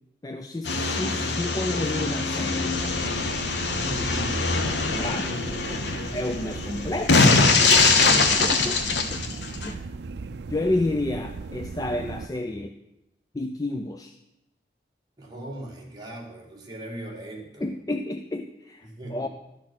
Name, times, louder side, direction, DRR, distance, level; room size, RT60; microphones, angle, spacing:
voice 1, 0.2-2.8 5.0-5.3 6.1-7.2 8.1-9.2 9.6-9.9 10.5-12.7 13.3-14.1 17.6-19.3, left 2 dB, 20° left, 6 dB, 0.4 m, -30 dB
sound 1, 0.6-9.7, left 4 dB, 80° left, 1.0 m, -23 dB
sound 2, 2.7-12.3, right 3 dB, 75° right, 0.4 m, -37 dB
voice 2, 3.7-5.3 5.6-5.9 8.0-8.5 15.2-17.7 18.8-19.3, right 1 dB, 25° right, -2 dB, 2.0 m, -38 dB
12.0 x 6.3 x 6.1 m, 0.89 s
head